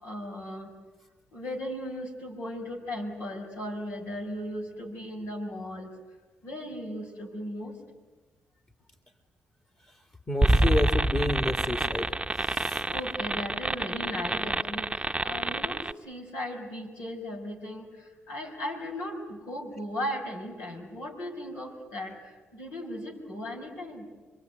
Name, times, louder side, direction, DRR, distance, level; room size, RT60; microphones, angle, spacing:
voice 1, 0.0-0.7 1.3-5.9 6.4-7.7 12.9-17.9 18.3-22.2 22.5-24.1, left 1 dB, 85° left, 0 dB, 5.8 m, -37 dB
voice 2, 10.3-12.8, left 1 dB, 30° left, 5 dB, 2.4 m, -30 dB
sound 1, 10.4-15.9, right 1 dB, 15° right, 0.8 m, -27 dB
26.5 x 23.0 x 9.5 m, 1.2 s
supercardioid pair, 50°, 5 cm